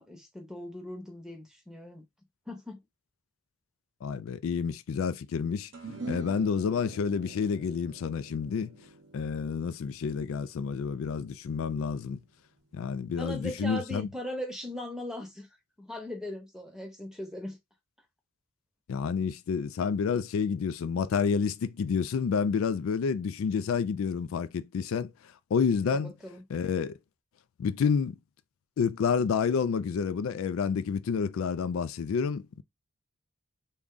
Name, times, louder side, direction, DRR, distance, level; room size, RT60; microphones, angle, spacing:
voice 1, 0.0-2.0 2.5-2.8 13.1-15.5 15.8-17.6 25.9-26.4, left 1 dB, 5° right, 0.8 m, -39 dB
voice 2, 4.0-5.7 6.1-8.7 9.1-12.2 12.7-14.1 18.9-25.1 25.5-26.1 26.5-26.9 27.6-28.2 28.8-32.6, left 6 dB, 80° left, 0.3 m, -29 dB
sound 1, 5.7-12.3, right 3 dB, 60° right, 0.7 m, -46 dB
3.6 x 2.2 x 3.7 m
head